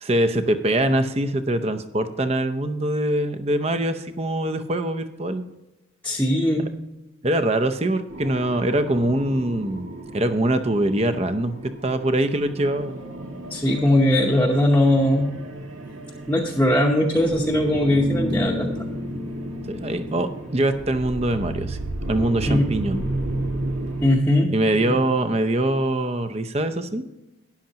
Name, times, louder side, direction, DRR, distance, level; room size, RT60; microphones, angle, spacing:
voice 1, 0.0-5.4 7.2-13.0 19.7-21.8 22.1-23.0 24.5-27.0, right 1 dB, 30° right, 10 dB, 0.7 m, -23 dB
voice 2, 6.0-6.7 13.5-15.3 16.3-18.8 22.5-22.7 24.0-24.5 24.9-25.0, left 1 dB, 10° left, -3 dB, 0.8 m, -20 dB
sound 1, 8.1-24.1, right 1 dB, 80° right, 1.9 m, -32 dB
13.0 x 10.5 x 2.9 m, 0.98 s
head